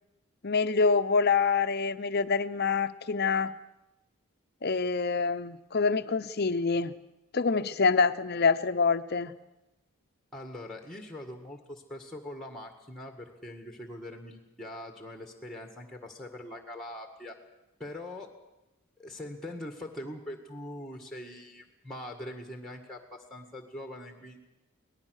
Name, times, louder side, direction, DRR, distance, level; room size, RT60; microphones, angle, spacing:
voice 1, 0.4-3.5 4.6-6.9 7.3-9.3, left 4 dB, 45° left, 11 dB, 0.8 m, -26 dB
voice 2, 10.3-17.4 17.8-18.4 19.0-24.4, left 1 dB, ahead, 4 dB, 1.9 m, -42 dB
24.5 x 18.5 x 6.5 m, 0.95 s
head